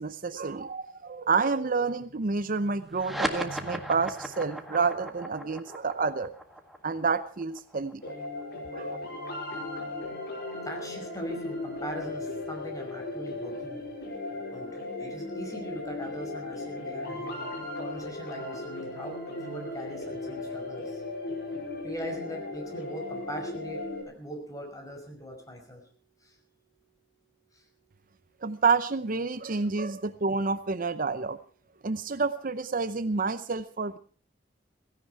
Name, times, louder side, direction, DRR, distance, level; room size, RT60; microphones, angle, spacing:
voice 1, 0.0-6.3 6.8-8.1 8.7-9.0 28.4-31.4 31.8-34.0, right 4 dB, 50° right, 13 dB, 0.7 m, -29 dB
sound 1, 2.9-9.8, equal, ahead, 1.8 m, -37 dB
sound 2, 8.0-24.0, left 2 dB, 60° left, 5.2 m, -36 dB
voice 2, 10.6-13.8 14.3-21.0 21.8-25.8 26.2-26.3 27.5-27.6 29.5-29.6, equal, 20° left, 3 dB, 5.3 m, -41 dB
16.5 x 16.5 x 4.7 m, 0.40 s
head